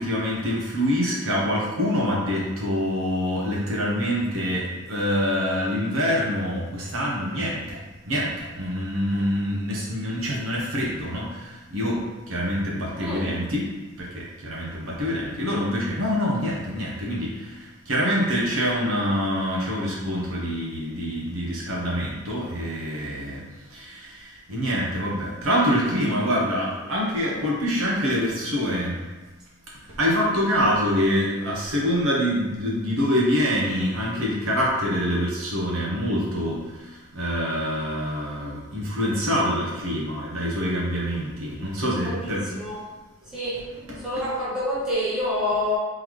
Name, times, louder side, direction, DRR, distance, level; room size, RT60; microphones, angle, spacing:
voice 1, 0.0-7.8 8.1-23.4 23.7-29.0 30.0-42.5 43.9-44.0, equal, 75° right, -4 dB, 1.0 m, -25 dB
voice 2, 13.0-13.3 42.0-42.8 43.2-43.7 44.0-45.8, left 1 dB, 5° right, -10 dB, 1.2 m, -27 dB
3.8 x 3.3 x 3.1 m, 1.1 s
head